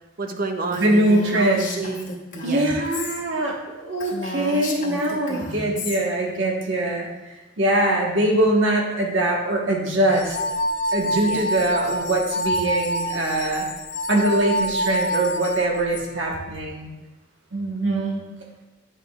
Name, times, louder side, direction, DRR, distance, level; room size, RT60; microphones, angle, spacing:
voice 1, 0.2-1.0 1.3-2.6 5.7-5.9 11.1-11.4, right 3 dB, 45° right, 5 dB, 0.6 m, -30 dB
Female speech woman speaking, 0.7-3.2 3.5-3.6 4.0-6.0, left 2 dB, 45° left, 1.0 m, -33 dB
voice 2, 0.7-1.7 2.4-7.1 7.6-10.4 10.9-13.7 14.1-16.9 17.5-18.2, right 1 dB, 70° right, -1 dB, 1.3 m, -22 dB
sound 1, 10.2-16.0, equal, 60° left, 0.5 m, -26 dB
9.0 x 5.8 x 2.3 m, 1.1 s
head